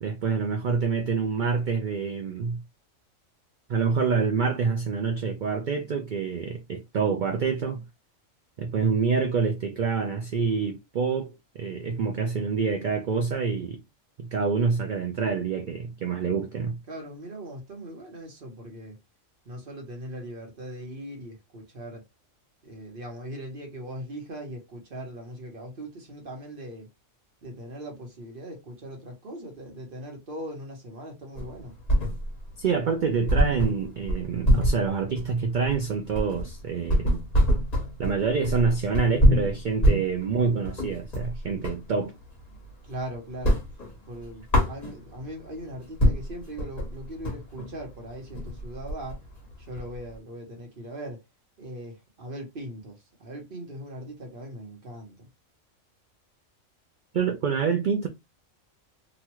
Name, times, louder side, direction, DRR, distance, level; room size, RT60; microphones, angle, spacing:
voice 1, 0.0-2.6 3.7-7.8 8.6-13.8 14.2-16.8 32.6-37.1 38.0-42.1 57.1-58.1, right 5 dB, 65° right, 0.5 m, -27 dB
voice 2, 16.9-19.0 19.4-22.0 22.6-26.9 27.4-31.8 42.8-43.6 44.1-49.2 49.6-51.2 51.6-55.2, right 1 dB, 45° right, 1.1 m, -40 dB
sound 1, 31.3-32.5 32.8-32.9 33.3-41.9 42.2-43.0 43.3-45.3 45.7-45.8 46.0-50.1, equal, 30° left, 1.2 m, -25 dB
3.0 x 2.4 x 2.9 m
omnidirectional pair, 1.3 m